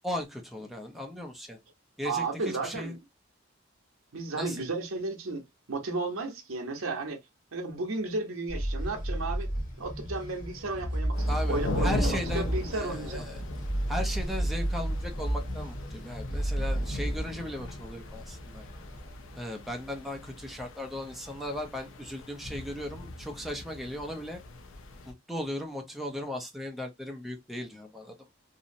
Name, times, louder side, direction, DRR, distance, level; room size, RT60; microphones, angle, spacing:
voice 1, 0.0-1.6 2.0-3.0 4.3-4.6 11.3-13.4 13.9-18.6 19.3-24.4 25.1-28.2, left 1 dB, ahead, 0.4 m, -37 dB
voice 2, 2.0-3.0 4.1-7.2 7.5-9.5 9.8-13.3, right 3 dB, 70° right, 0.7 m, -33 dB
sound 1, 8.5-19.1, right 1 dB, 40° left, 0.9 m, -32 dB
sound 2, 11.1-25.1, left 2 dB, 65° left, 0.4 m, -39 dB
2.7 x 2.0 x 2.5 m
head